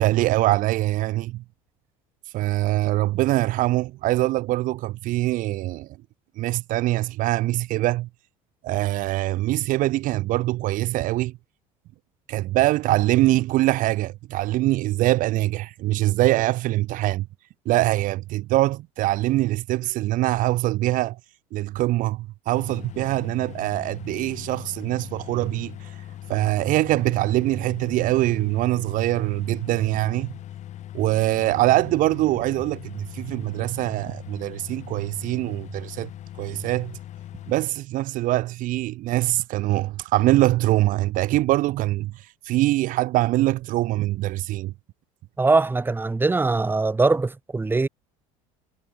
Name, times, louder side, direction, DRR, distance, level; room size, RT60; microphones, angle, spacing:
voice 1, 0.0-1.4 2.3-5.9 6.4-8.1 8.6-11.4 12.3-17.3 17.6-21.2 21.5-25.9 26.3-30.3 30.9-36.1 36.4-37.0 37.5-42.1 42.4-44.7, right 17 dB, 60° right, 1.4 m, -23 dB
sound 1, 22.5-37.5, left 12 dB, 50° left, 3.0 m, -40 dB
voice 2, 45.4-47.9, right 3 dB, 15° right, 2.0 m, -21 dB
supercardioid pair, 115°, 16 cm